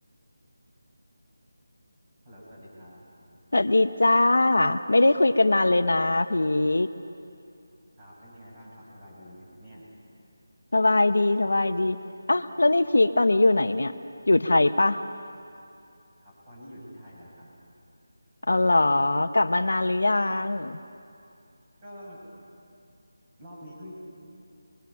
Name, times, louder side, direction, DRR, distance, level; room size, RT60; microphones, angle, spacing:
voice 1, 2.2-3.0 8.0-9.9 16.2-17.5 21.8-22.2 23.4-23.9, equal, 20° right, -6 dB, 6.9 m, -46 dB
voice 2, 3.5-6.9 10.7-12.0 12.3-13.9 14.3-15.0 18.5-20.8, left 2 dB, 85° left, 9 dB, 1.0 m, -21 dB
27.5 x 22.0 x 5.7 m, 2.5 s
figure-of-eight pair, 170°, 0 cm